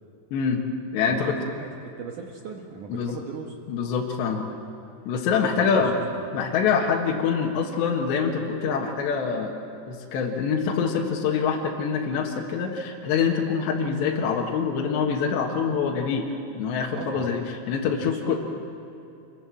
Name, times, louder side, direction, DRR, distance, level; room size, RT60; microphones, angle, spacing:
voice 1, 0.3-0.6 0.9-1.4 2.9-3.2 3.7-4.5 5.1-6.0 6.3-9.6 9.9-16.3 16.5-18.4, left 6 dB, 75° left, 0 dB, 3.7 m, -25 dB
voice 2, 1.1-3.6 5.8-6.4 16.9-17.3 17.8-18.4, right 5 dB, 65° right, 1 dB, 2.0 m, -37 dB
26.5 x 21.5 x 7.7 m, 2.7 s
omnidirectional pair, 5.2 m